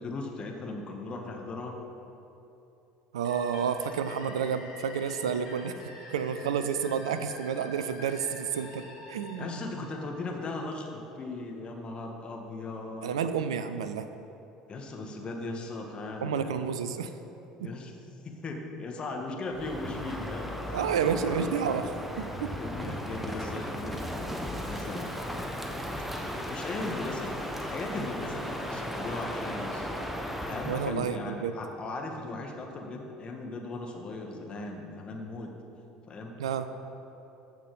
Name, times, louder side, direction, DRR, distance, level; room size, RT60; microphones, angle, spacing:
voice 1, 0.0-1.8 4.2-4.4 6.6-6.7 9.4-13.2 14.7-16.7 17.6-17.9 18.2-21.1 22.5-25.1 26.1-30.0 30.4-35.6 36.1-36.3, left 2 dB, 30° left, 1 dB, 1.7 m, -38 dB
voice 2, 3.1-5.7 6.1-9.5 13.0-14.1 16.2-17.1 17.6-17.7 20.7-22.5 30.6-31.5 36.4-36.7, right 7 dB, 70° right, 10 dB, 0.6 m, -30 dB
sound 1, 3.2-10.8, left 2 dB, 65° left, 2.0 m, -48 dB
Crow, 19.5-31.0, equal, 5° right, 1.1 m, -36 dB
14.5 x 6.1 x 5.4 m, 2.9 s
figure-of-eight pair, 65°, 3 cm